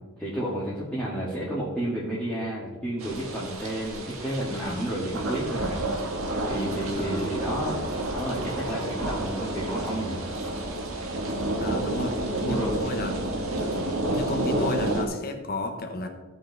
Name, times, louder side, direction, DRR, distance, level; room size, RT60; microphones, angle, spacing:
voice 1, 0.2-6.2 6.5-7.8 8.1-10.3 11.6-11.8 12.5-12.8 13.6-13.7, right 1 dB, 5° left, -8 dB, 1.8 m, -31 dB
sound 1, 3.0-15.0, right 1 dB, 75° right, 1.7 m, -30 dB
voice 2, 4.5-4.9 6.9-7.3 11.6-12.1 12.4-13.2 14.1-16.1, left 2 dB, 45° left, 4 dB, 1.2 m, -32 dB
15.5 x 5.5 x 4.1 m, 1.2 s
head